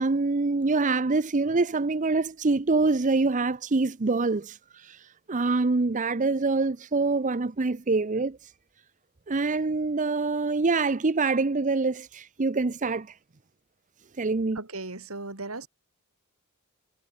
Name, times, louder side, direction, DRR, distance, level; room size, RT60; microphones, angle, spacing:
voice 1, 0.0-8.5 9.3-13.2 14.2-14.6, right 3 dB, 35° right, 0.7 m, -25 dB
voice 2, 14.5-15.7, right 2 dB, 80° right, 4.1 m, -36 dB
head